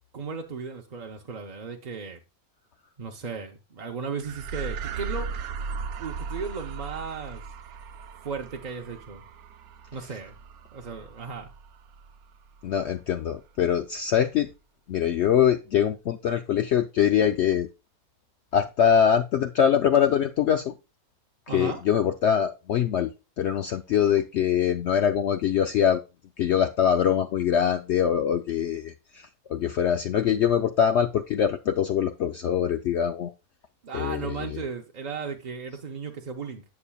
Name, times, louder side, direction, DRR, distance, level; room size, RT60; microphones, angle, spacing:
voice 1, 0.1-2.2 3.0-5.3 6.0-7.4 8.2-9.2 9.9-10.4 10.7-11.5 21.5-21.8 33.8-36.6, right 5 dB, 45° right, 0.6 m, -35 dB
sound 1, 4.2-12.8, right 5 dB, 80° right, 1.1 m, -37 dB
voice 2, 12.6-14.5 14.9-17.7 18.5-20.7 21.5-23.1 23.4-26.0 26.4-33.3 33.9-34.6, left 9 dB, 65° left, 0.7 m, -23 dB
8.5 x 7.0 x 2.3 m
omnidirectional pair, 1.5 m